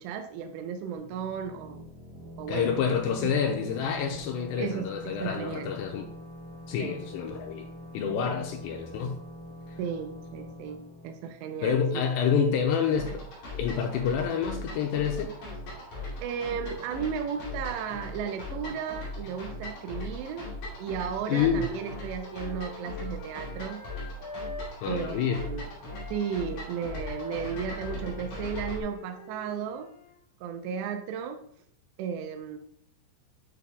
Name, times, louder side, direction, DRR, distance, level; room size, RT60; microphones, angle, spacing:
voice 1, 0.0-1.9 2.4-2.8 3.2-3.3 4.6-5.8 6.8-7.0 9.8-12.1 16.2-20.4 20.8-23.9 24.9-25.7 26.1-29.9 30.4-31.4 32.0-32.6, right 7 dB, 85° right, 6 dB, 2.5 m, -34 dB
sound 1, 0.9-12.4, left 1 dB, 55° right, 3.3 m, -45 dB
voice 2, 2.5-6.1 6.7-7.7 7.9-9.2 11.6-13.2 13.6-15.3 21.3-21.7 24.8-25.4, left 7 dB, 90° left, 2 dB, 2.4 m, -28 dB
sound 2, 12.9-28.8, left 1 dB, 45° left, 3.1 m, -39 dB
Wind instrument woodwind instrument, 21.5-25.6 25.9-30.1, left 2 dB, 70° left, 3.5 m, -45 dB
9.8 x 6.0 x 2.3 m, 0.66 s
omnidirectional pair, 5.6 m